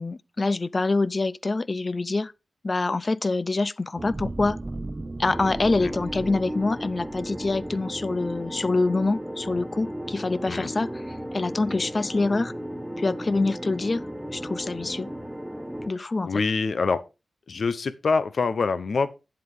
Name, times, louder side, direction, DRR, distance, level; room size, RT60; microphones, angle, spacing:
voice 1, 0.0-2.3 2.6-4.6 5.2-10.9 11.3-12.5 13.0-14.0 14.3-15.1 15.9-16.3, left 3 dB, 35° left, 0.4 m, -25 dB
sound 1, 4.0-8.5 8.9-9.1, right 2 dB, 25° right, 0.5 m, -37 dB
sound 2, 5.3-15.9, equal, 5° right, 1.0 m, -35 dB
voice 2, 16.2-17.0 17.5-19.1, left 4 dB, 65° left, 0.8 m, -25 dB
8.8 x 7.7 x 3.6 m
wide cardioid pair, 75°, 0 cm